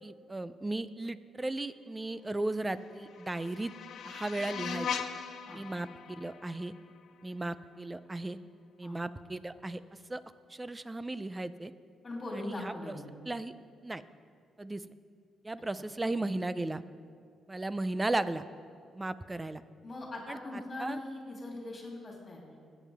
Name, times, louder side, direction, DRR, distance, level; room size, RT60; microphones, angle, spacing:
voice 1, 0.0-3.7 4.0-4.9 5.5-6.7 7.2-8.4 8.8-9.8 10.1-10.2 10.5-11.7 12.4-12.7 13.3-13.5 13.8-14.0 14.6-14.8 15.4-16.8 17.5-18.4 18.9-19.6 20.3-20.4 20.8-21.0, right 2 dB, 15° right, 14 dB, 0.4 m, -35 dB
sound 1, 2.6-7.6, left 7 dB, 65° left, 0.6 m, -40 dB
voice 2, 12.0-13.0 19.8-22.6, left 2 dB, 25° left, -2 dB, 2.8 m, -41 dB
21.5 x 9.1 x 3.5 m, 2.3 s
cardioid pair, 150°, 0 cm